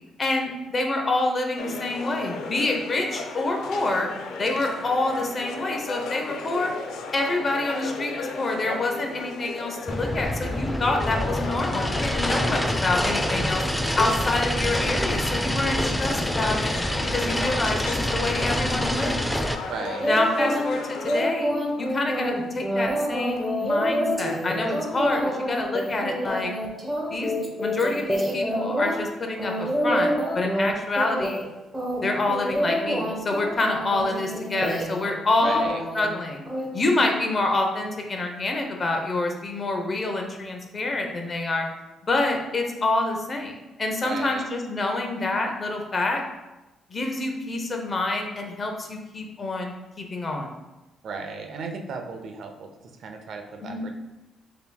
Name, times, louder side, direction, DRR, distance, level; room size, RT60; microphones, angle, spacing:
voice 1, 0.2-4.1 4.4-6.7 7.1-13.6 14.0-16.7 17.1-19.3 20.1-25.2 25.5-26.5 27.1-31.4 32.0-35.7 35.9-36.4 36.7-41.6 42.1-46.2 46.9-50.5 53.6-53.9, left 2 dB, 35° left, 2 dB, 0.8 m, -27 dB
sound 1, 1.6-21.2, left 4 dB, 80° left, 0.4 m, -35 dB
sound 2, 9.9-19.5, equal, 5° left, 0.4 m, -26 dB
voice 2, 19.7-20.2 35.4-35.8 44.0-44.5 51.0-52.7 53.0-53.9, right 4 dB, 65° right, 4 dB, 0.5 m, -35 dB
sound 3, 20.0-20.7 21.0-29.0 29.4-30.7 31.0-31.4 31.7-35.1 35.4-36.0 36.5-36.6, equal, 15° right, 0.9 m, -27 dB
6.7 x 2.9 x 2.3 m, 1.0 s
cardioid pair, 90°, 0 cm